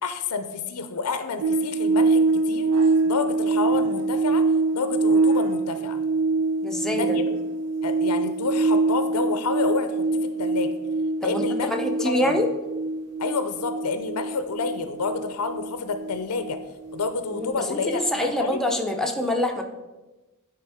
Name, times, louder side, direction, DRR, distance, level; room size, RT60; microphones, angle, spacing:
voice 1, 0.0-2.7 3.1-4.5 4.7-6.0 6.9-7.3 7.8-10.7 11.2-11.7 12.0-12.2 13.2-16.6 16.9-18.6, left 4 dB, 85° left, 9 dB, 0.6 m, -29 dB
sound 1, 1.4-18.0 18.2-18.4, right 3 dB, 80° right, 0.9 m, -24 dB
voice 2, 6.6-7.2 11.2-11.4 11.7-12.5 17.3-19.6, left 1 dB, ahead, 1 dB, 0.6 m, -25 dB
9.7 x 3.6 x 4.9 m, 1.1 s
head